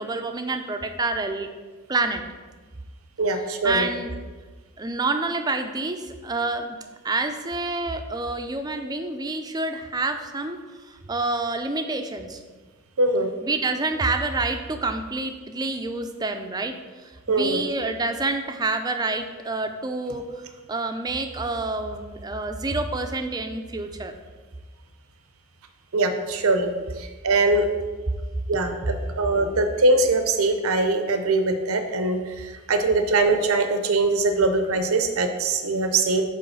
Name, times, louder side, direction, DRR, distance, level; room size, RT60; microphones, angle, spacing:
voice 1, 0.0-1.5 1.9-2.2 3.6-4.1 4.8-6.8 7.0-10.6 11.1-12.4 13.4-16.7 17.0-20.2 20.7-24.1, right 3 dB, 20° right, 6 dB, 0.4 m, -27 dB
voice 2, 3.2-3.9 13.0-13.3 17.3-17.6 25.9-26.7 27.0-27.7 28.5-36.2, right 2 dB, 85° right, 7 dB, 0.7 m, -22 dB
8.4 x 3.2 x 5.5 m, 1.3 s
head